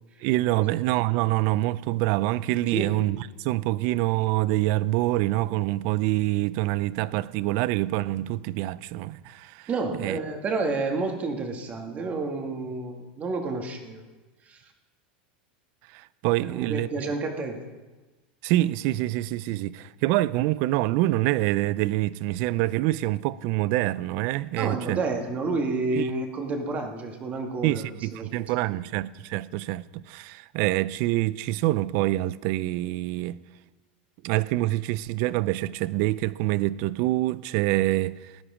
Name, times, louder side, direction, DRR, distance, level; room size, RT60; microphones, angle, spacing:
voice 1, 0.2-9.7 10.0-10.2 15.9-16.9 18.4-25.0 25.9-26.0 27.6-33.4 34.2-38.4, right 17 dB, 55° right, 0.4 m, -26 dB
voice 2, 9.7-14.0 14.4-14.7 16.4-17.6 24.5-28.4 28.7-28.8, right 3 dB, 25° right, 1.8 m, -30 dB
17.5 x 10.0 x 5.0 m
supercardioid pair, 135°, 5 cm